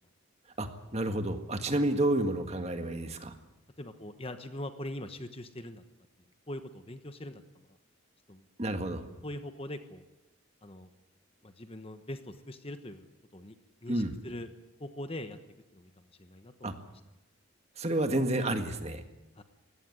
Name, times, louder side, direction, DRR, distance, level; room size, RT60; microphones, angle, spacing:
voice 1, 0.6-3.3 8.6-9.0 13.9-14.1 16.6-16.7 17.8-19.0, right 1 dB, 30° right, 7 dB, 1.8 m, -30 dB
voice 2, 3.8-5.8 6.5-7.4 8.3-8.4 9.2-10.0 10.6-10.9 11.4-13.1 13.3-13.5 13.8-14.5 14.8-15.4 15.7-15.9 16.2-16.7 19.4-19.5, left 1 dB, 25° left, 9 dB, 1.1 m, -42 dB
20.0 x 17.0 x 9.9 m, 0.96 s
head